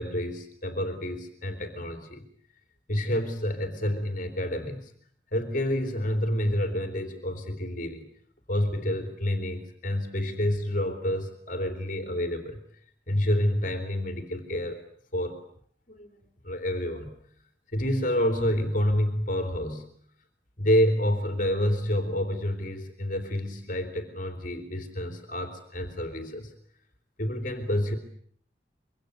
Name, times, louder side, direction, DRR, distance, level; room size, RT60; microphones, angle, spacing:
voice 1, 0.0-2.2 2.9-4.9 5.3-8.0 8.5-12.6 13.1-14.8 15.1-15.4 15.9-17.1 17.7-19.9 20.6-26.5 27.2-28.0, left 1 dB, 45° left, 7 dB, 3.3 m, -28 dB
25.5 x 24.0 x 8.1 m, 0.62 s
head